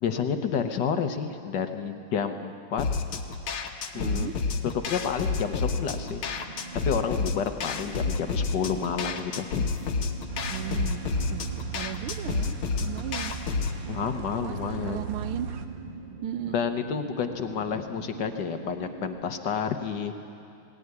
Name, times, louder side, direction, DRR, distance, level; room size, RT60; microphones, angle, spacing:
voice 1, 0.0-2.8 3.9-4.3 4.9-6.2 6.8-9.6 13.9-15.0 16.5-20.1, left 7 dB, 60° left, 7 dB, 1.5 m, -30 dB
sound 1, 2.8-13.8, left 4 dB, 85° left, 2.1 m, -30 dB
voice 2, 3.9-4.3 10.5-11.0 11.3-11.4 11.7-13.3 14.4-15.5 16.2-16.6, right 12 dB, 85° right, 13 dB, 1.5 m, -36 dB
sound 2, 5.3-19.2, right 4 dB, 30° right, 1.3 m, -43 dB
sound 3, 10.3-15.7, right 6 dB, 50° right, 1.4 m, -37 dB
18.5 x 18.5 x 9.7 m, 2.7 s
omnidirectional pair, 2.3 m